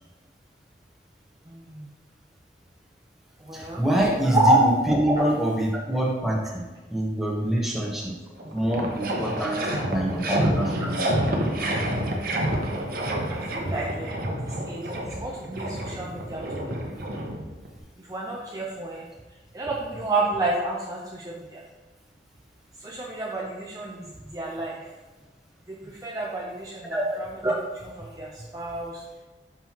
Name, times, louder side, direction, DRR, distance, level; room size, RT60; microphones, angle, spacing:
voice 1, 1.5-1.9 3.5-3.8 4.3-4.6 13.3-14.2 14.7-16.5 16.8-16.9 18.1-19.1 19.5-21.6 22.8-24.8 25.9-27.5 27.8-29.0, right 2 dB, 20° right, -3 dB, 0.5 m, -29 dB
voice 2, 3.5-6.6 6.9-8.0 8.5-11.0 26.9-27.2, right 1 dB, ahead, -3 dB, 1.0 m, -25 dB
sound 1, 8.0-8.1 8.4-17.8, right 1 dB, 55° right, 0.8 m, -28 dB
5.9 x 5.4 x 3.0 m, 1.2 s
head